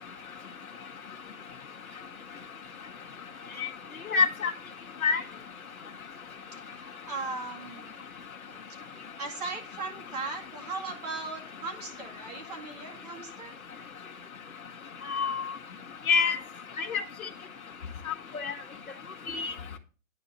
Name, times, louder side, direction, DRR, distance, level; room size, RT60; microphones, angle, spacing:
voice 1, 4.1-4.5 5.0-5.2 15.1-15.4 16.1-16.4 16.8-17.0 18.1-18.5 19.3-19.5, left 5 dB, 85° left, 1.5 m, -26 dB
voice 2, 6.6-8.0 8.8-13.5, right 3 dB, 30° right, 2.1 m, -38 dB
10.5 x 4.3 x 7.1 m
hypercardioid pair, 170°, 41 cm